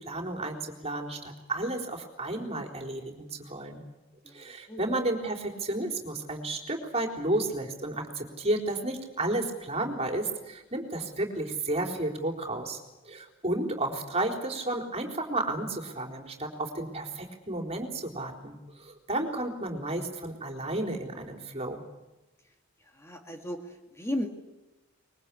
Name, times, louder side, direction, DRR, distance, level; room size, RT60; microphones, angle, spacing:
voice 1, 0.0-3.8 4.3-12.8 13.1-21.8, right 2 dB, 30° right, 3 dB, 4.1 m, -32 dB
voice 2, 22.9-24.3, left 1 dB, 15° left, 3 dB, 2.0 m, -35 dB
24.0 x 22.5 x 8.5 m, 1.0 s
head